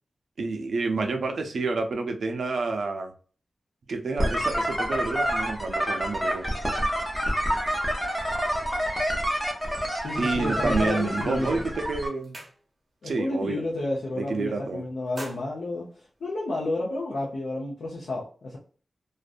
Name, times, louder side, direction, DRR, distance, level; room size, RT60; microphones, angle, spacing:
voice 1, 0.4-3.1 3.9-6.4 10.2-12.4 13.0-13.6 14.2-14.8, right 3 dB, 70° right, 0.5 m, -29 dB
sound 1, 4.2-12.1, equal, ahead, 0.6 m, -28 dB
voice 2, 10.0-11.7 13.0-18.6, left 2 dB, 75° left, 0.6 m, -31 dB
sound 2, 11.3-11.6 11.9-13.0 13.4-13.7 14.0-14.5 14.9-16.7, right 1 dB, 35° right, 0.7 m, -45 dB
2.5 x 2.2 x 2.4 m
wide cardioid pair, 180°, 0 cm